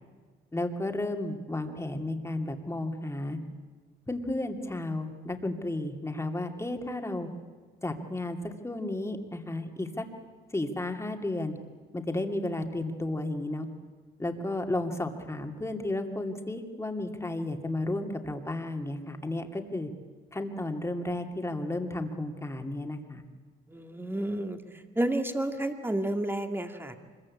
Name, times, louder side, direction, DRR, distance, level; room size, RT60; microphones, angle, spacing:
voice 1, 0.5-3.4 4.1-7.3 7.8-10.0 10.5-11.6 11.9-13.7 14.2-19.9 20.3-23.2, left 2 dB, 15° left, 4 dB, 2.6 m, -33 dB
voice 2, 23.7-24.6 25.0-27.0, right 1 dB, 10° right, 5 dB, 2.3 m, -30 dB
25.0 x 21.5 x 8.6 m, 1.5 s
cardioid pair, 90°, 20 cm